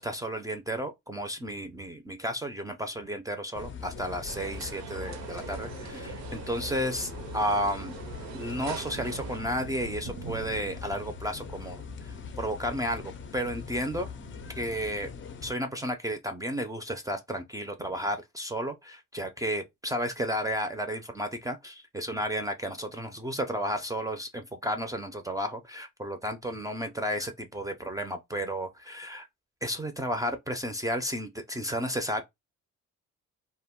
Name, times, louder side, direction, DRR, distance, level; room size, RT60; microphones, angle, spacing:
voice 1, 0.0-7.9 8.3-14.1 14.6-15.1 15.4-29.3 29.6-32.2, equal, 10° right, 0.4 m, -33 dB
sound 1, 3.5-15.5, left 6 dB, 40° left, 0.5 m, -42 dB
sound 2, 3.8-14.5, right 4 dB, 90° right, 0.8 m, -48 dB
sound 3, 4.3-9.4, right 9 dB, 65° right, 0.5 m, -42 dB
2.2 x 2.1 x 3.6 m
cardioid pair, 90°, 30 cm